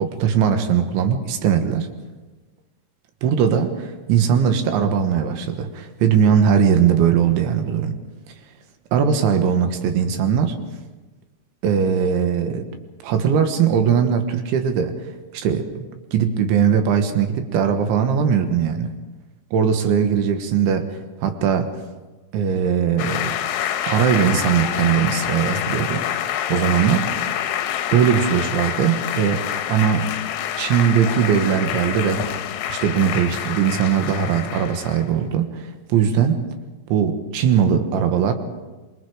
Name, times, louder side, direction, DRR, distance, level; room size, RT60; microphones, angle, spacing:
voice 1, 0.0-1.9 3.2-7.9 8.9-10.6 11.6-12.7 13.0-14.9 15.3-15.9 16.1-18.9 19.5-20.9 21.2-21.7 22.3-23.4 23.9-26.1 26.5-27.1 27.9-30.2 30.6-32.2 32.7-36.4 36.9-38.3, right 7 dB, 75° right, 7 dB, 3.6 m, -20 dB
sound 1, 23.0-35.1, left 10 dB, 75° left, 2.6 m, -27 dB
26.5 x 23.0 x 4.9 m, 1.2 s
omnidirectional pair, 5.8 m